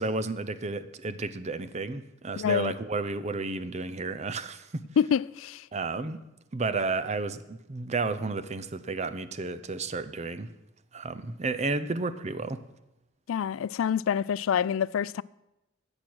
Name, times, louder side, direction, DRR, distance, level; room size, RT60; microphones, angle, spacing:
voice 1, 0.0-4.8 5.7-6.2 6.5-10.5 10.9-12.6, right 3 dB, 35° right, 0.6 m, -32 dB
voice 2, 2.4-2.7 5.0-5.6 13.3-15.2, left 8 dB, 80° left, 0.3 m, -26 dB
13.5 x 8.7 x 6.1 m
head